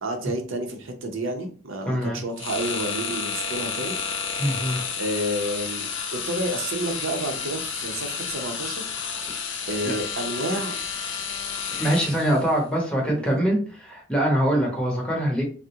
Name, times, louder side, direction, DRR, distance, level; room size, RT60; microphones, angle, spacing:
voice 1, 0.0-4.5 5.0-8.9 9.7-10.8 13.0-13.4, right 1 dB, 75° right, 4 dB, 0.6 m, -30 dB
voice 2, 1.9-2.2 4.4-4.8 9.8-9.9 11.7-15.4, equal, 5° left, -2 dB, 0.8 m, -23 dB
sound 1, 2.4-12.5, left 6 dB, 65° left, 0.5 m, -31 dB
3.5 x 2.0 x 2.8 m, 0.41 s
head